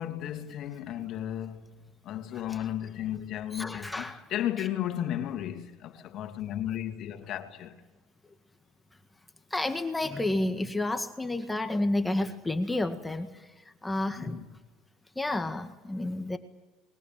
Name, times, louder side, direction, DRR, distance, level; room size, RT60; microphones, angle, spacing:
voice 1, 0.0-1.7 2.0-7.8 14.1-14.5, left 11 dB, 55° left, 2.6 m, -34 dB
voice 2, 3.5-4.2 9.5-13.3 13.8-14.4 15.2-16.4, left 2 dB, 10° left, 1.8 m, -30 dB
28.0 x 22.0 x 7.6 m
supercardioid pair, 85°, 0 cm